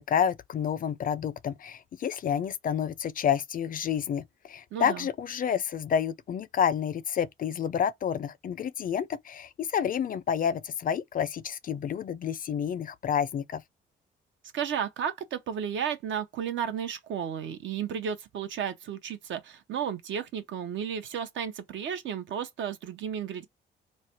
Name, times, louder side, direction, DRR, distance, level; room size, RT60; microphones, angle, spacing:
voice 1, 0.0-13.6, left 8 dB, 45° left, 0.4 m, -29 dB
voice 2, 4.7-5.1 14.5-23.5, right 8 dB, 70° right, 0.8 m, -33 dB
3.2 x 2.1 x 4.2 m
cardioid pair, 90°, 20 cm